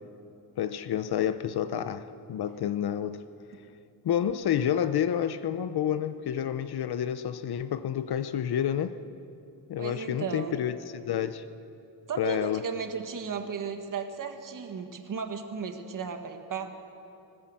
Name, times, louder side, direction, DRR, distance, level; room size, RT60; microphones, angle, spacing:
voice 1, 0.6-3.2 4.0-9.0 9.7-11.5 12.2-12.6, left 9 dB, 80° left, 0.8 m, -29 dB
voice 2, 9.8-10.5 12.1-16.7, right 6 dB, 55° right, 1.7 m, -35 dB
20.5 x 20.0 x 7.6 m
wide cardioid pair, 160°, 38 cm